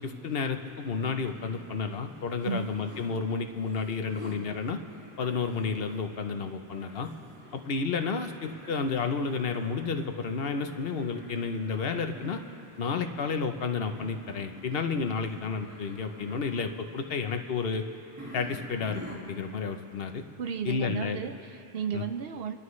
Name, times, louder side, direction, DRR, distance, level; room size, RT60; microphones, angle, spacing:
voice 1, 0.0-4.8 5.2-7.1 7.5-12.4 12.8-17.8 18.3-20.2 20.6-21.2 21.9-22.0, left 5 dB, 70° left, 7 dB, 1.0 m, -31 dB
sound 1, 0.9-19.7, equal, 15° right, 2.0 m, -49 dB
voice 2, 20.4-22.6, right 6 dB, 70° right, 8 dB, 0.9 m, -34 dB
28.5 x 12.0 x 3.2 m, 2.8 s
omnidirectional pair, 1.0 m